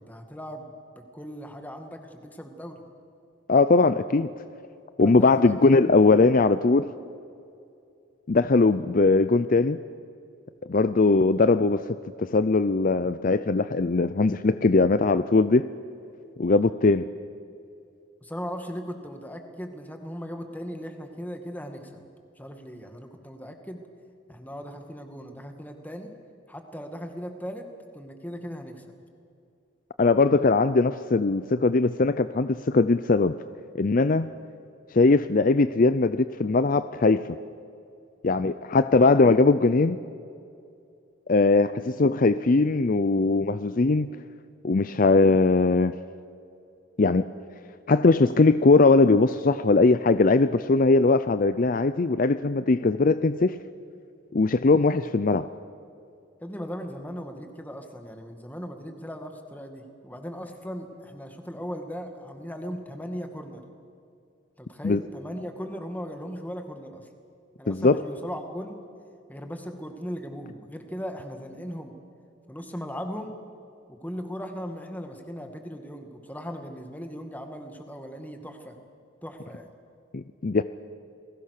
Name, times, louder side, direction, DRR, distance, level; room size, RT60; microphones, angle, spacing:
voice 1, 0.0-2.8 5.0-6.0 18.2-22.0 22.4-23.8 24.3-26.1 26.5-27.7 27.9-28.8 56.4-63.6 64.6-67.1 67.6-68.8 69.3-71.9 72.5-73.4 73.9-78.8 79.2-79.7, equal, 10° left, 5 dB, 2.1 m, -38 dB
voice 2, 3.5-4.3 5.0-6.9 8.3-9.8 10.7-15.7 16.4-17.1 30.0-33.4 33.7-34.3 34.9-37.2 38.2-40.0 41.3-44.1 44.6-46.0 47.0-47.3 47.9-53.6 54.3-55.5 64.8-65.0 67.7-68.0 80.1-80.6, left 3 dB, 40° left, 13 dB, 0.5 m, -20 dB
29.5 x 21.0 x 6.7 m, 2.5 s
head